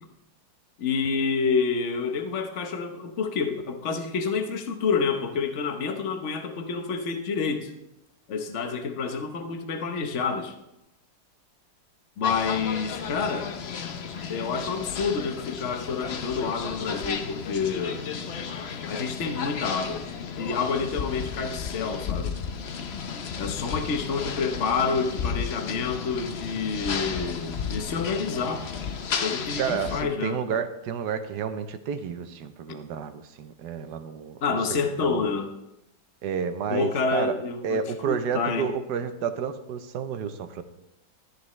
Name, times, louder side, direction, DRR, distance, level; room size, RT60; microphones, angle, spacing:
voice 1, 0.8-7.7 8.3-10.5 12.2-13.5 14.3-18.0 18.9-20.0 20.4-22.3 23.4-28.7 29.2-30.6 34.4-35.5 36.7-38.7, left 5 dB, 45° left, 6 dB, 1.2 m, -28 dB
sound 1, 12.2-30.0, left 6 dB, 65° left, 0.6 m, -33 dB
voice 2, 29.6-35.3 36.2-37.4 37.6-40.6, right 7 dB, 70° right, 9 dB, 1.3 m, -31 dB
13.0 x 10.5 x 3.2 m, 0.88 s
omnidirectional pair, 2.0 m